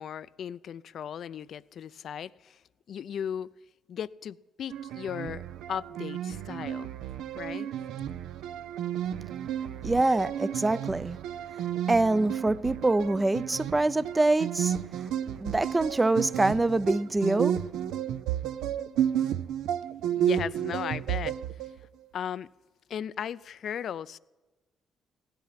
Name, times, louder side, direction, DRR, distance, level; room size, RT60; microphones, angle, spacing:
voice 1, 0.0-2.6 2.9-3.5 3.9-5.4 5.7-6.9 7.4-7.7 20.2-21.3 22.1-22.5 22.9-24.2, left 8 dB, 65° left, 0.4 m, -36 dB
sound 1, 4.7-21.8, right 10 dB, 90° right, 0.6 m, -32 dB
voice 2, 9.8-11.2 11.9-14.7 15.4-17.6, right 2 dB, 20° right, 0.5 m, -25 dB
16.5 x 11.5 x 5.8 m
cardioid pair, 90°, 0 cm